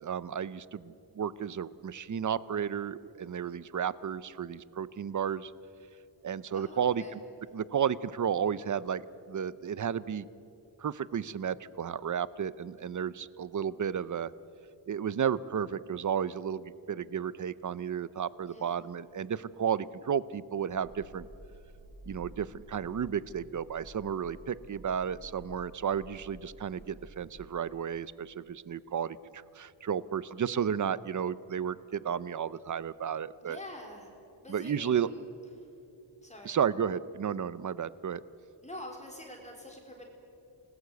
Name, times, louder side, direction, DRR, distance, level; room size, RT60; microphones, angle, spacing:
voice 1, 0.0-5.5 6.2-7.2 7.5-9.0 9.3-10.3 10.8-14.3 14.9-21.3 22.1-33.6 34.5-35.1 36.4-38.2, right 8 dB, 40° right, 18 dB, 0.7 m, -33 dB
voice 2, 6.5-7.1 18.5-18.8 33.4-34.1 34.4-35.2 35.6-35.7 36.2-36.6 38.6-40.0, left 1 dB, 15° left, 0 dB, 3.6 m, -46 dB
sound 1, 20.7-27.4, right 1 dB, 85° right, 7.8 m, -52 dB
28.0 x 19.5 x 8.1 m, 2.8 s
wide cardioid pair, 140°, 46 cm